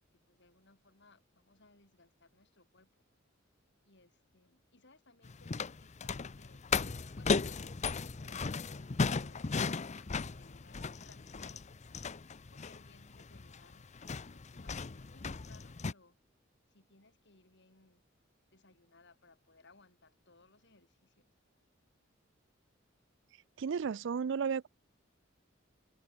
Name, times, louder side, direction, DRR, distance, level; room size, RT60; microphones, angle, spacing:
voice 1, 0.1-3.0 3.8-6.7 7.2-11.8 12.5-13.9 14.3-16.2 16.7-18.0 18.5-21.3, left 3 dB, 60° left, 5.6 m, -64 dB
sound 1, 5.2-15.9, left 4 dB, 35° left, 0.6 m, -36 dB
voice 2, 23.6-24.7, right 6 dB, 65° right, 0.4 m, -33 dB
head